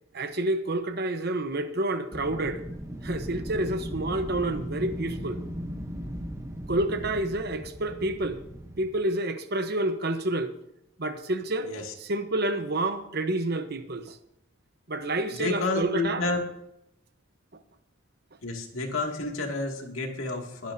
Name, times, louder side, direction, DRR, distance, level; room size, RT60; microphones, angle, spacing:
voice 1, 0.1-2.6 3.0-5.4 6.7-8.4 8.8-10.5 11.0-11.7 12.0-14.2 14.9-16.3, right 1 dB, 50° right, 1.1 m, -29 dB
Wind, 2.1-9.1, equal, 15° right, 1.0 m, -37 dB
voice 2, 15.3-16.4 18.4-20.7, left 2 dB, 80° left, 2.4 m, -30 dB
21.5 x 10.5 x 2.8 m
head